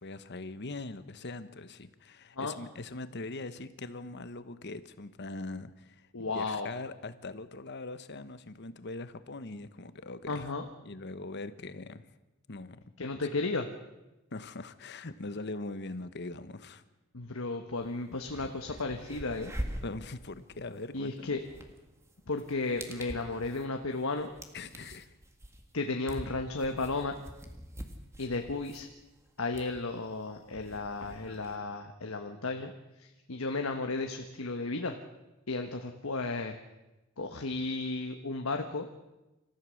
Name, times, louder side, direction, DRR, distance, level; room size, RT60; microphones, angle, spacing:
voice 1, 0.0-10.4 10.8-12.1 12.5-12.8 14.3-16.8 19.8-21.4 24.5-25.1 32.0-32.1, left 2 dB, 55° left, 12 dB, 1.1 m, -41 dB
voice 2, 6.1-6.7 10.3-10.6 13.0-13.7 17.1-19.5 20.9-21.4 22.3-24.3 25.7-27.1 28.2-28.9 29.4-32.7 33.0-35.0 35.5-36.5 37.2-38.9, left 3 dB, 80° left, 5 dB, 1.3 m, -34 dB
sound 1, 17.8-17.9 18.2-31.6, equal, 15° right, 1.9 m, -45 dB
27.5 x 14.5 x 6.4 m, 1.0 s
head